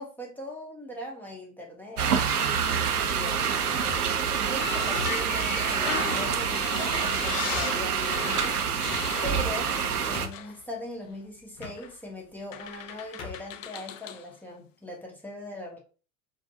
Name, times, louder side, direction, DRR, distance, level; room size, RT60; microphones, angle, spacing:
voice 1, 0.0-2.1 3.1-3.4 4.4-8.7 9.2-9.7 10.0-15.8, left 1 dB, 5° left, 0.9 m, -40 dB
sound 1, 2.0-10.3, right 7 dB, 80° right, 0.6 m, -27 dB
sound 2, 3.7-4.3 5.0-5.6 6.2-6.4 7.0-7.1 7.5-7.9 8.8-9.4 9.8-9.9 10.1-10.6 11.6-11.8 12.6-12.8 13.2-13.5, left 5 dB, 35° left, 1.0 m, -40 dB
sound 3, 4.6-10.0 10.3-10.6 11.8-11.9 12.5-14.3, left 9 dB, 60° left, 0.5 m, -37 dB
4.9 x 2.2 x 2.7 m
figure-of-eight pair, 85°, 45 cm